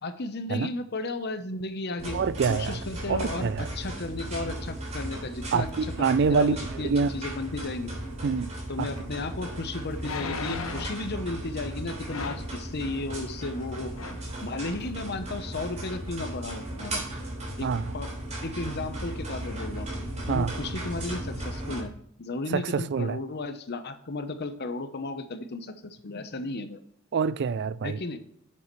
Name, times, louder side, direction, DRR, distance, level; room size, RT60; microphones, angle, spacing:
voice 1, 0.0-2.2 2.5-5.7 6.0-7.9 8.7-13.9 14.4-17.0 17.6-17.7 17.9-18.1 18.4-19.9 20.3-21.9 22.2-26.8 27.8-28.2, left 2 dB, 50° left, 0.9 m, -34 dB
sound 1, 2.0-21.8, right 1 dB, 35° right, 3.2 m, -36 dB
voice 2, 2.1-2.8 3.1-3.7 5.5-7.1 8.2-8.9 17.6-17.9 20.3-20.5 22.5-23.2 27.1-28.0, right 5 dB, 55° right, 0.4 m, -26 dB
sound 2, 9.0-9.1 10.0-11.0 12.1-12.5 13.5-13.7 13.9-14.3 14.8-14.9, left 5 dB, 85° left, 1.1 m, -36 dB
9.6 x 7.6 x 3.2 m
head